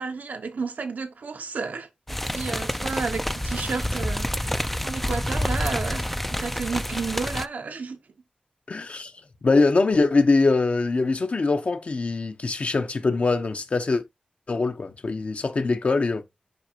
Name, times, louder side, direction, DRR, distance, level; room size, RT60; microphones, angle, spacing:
voice 1, 0.0-8.0, right 4 dB, 80° right, 1.1 m, -32 dB
sound 1, 2.1-7.5, left 1 dB, 5° left, 0.4 m, -28 dB
voice 2, 8.7-9.1 9.4-14.0 14.5-16.2, left 3 dB, 50° left, 0.9 m, -23 dB
7.8 x 5.3 x 2.9 m
wide cardioid pair, 105°, 3 cm